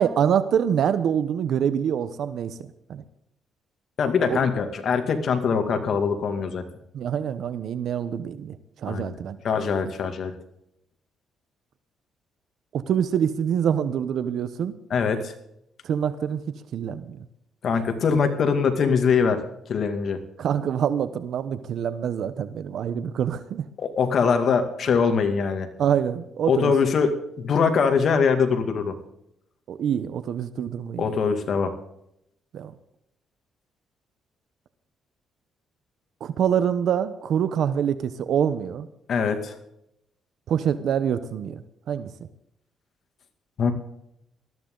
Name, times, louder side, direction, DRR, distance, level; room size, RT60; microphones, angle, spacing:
voice 1, 0.0-2.6 2.9-3.0 4.3-4.4 6.9-8.6 8.8-9.4 12.7-14.7 15.8-17.2 20.4-23.7 25.8-26.7 29.7-31.1 32.5-32.7 36.2-38.9 40.5-42.1, right 8 dB, 70° right, 13 dB, 0.8 m, -25 dB
voice 2, 4.0-6.6 8.9-9.2 9.4-10.3 14.9-15.3 17.6-19.4 19.7-20.2 23.8-25.7 26.5-28.9 31.0-31.7 39.1-39.6 43.6-43.7, left 5 dB, 60° left, 7 dB, 2.3 m, -22 dB
19.5 x 14.0 x 3.9 m, 0.79 s
cardioid pair, 90°, 0 cm